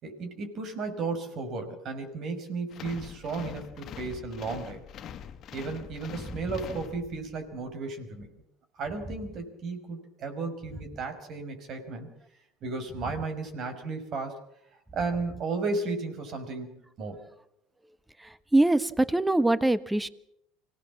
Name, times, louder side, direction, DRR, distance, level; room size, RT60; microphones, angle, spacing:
voice 1, 0.0-4.8 5.5-8.3 8.8-12.1 12.6-14.4 14.9-17.2, right 3 dB, 50° right, 6 dB, 5.6 m, -34 dB
sound 1, 2.7-7.4, left 8 dB, 50° left, 1.8 m, -43 dB
voice 2, 18.5-20.1, right 2 dB, 10° right, 15 dB, 1.3 m, -23 dB
25.5 x 17.5 x 7.4 m, 0.75 s
hypercardioid pair, 80°, 0 cm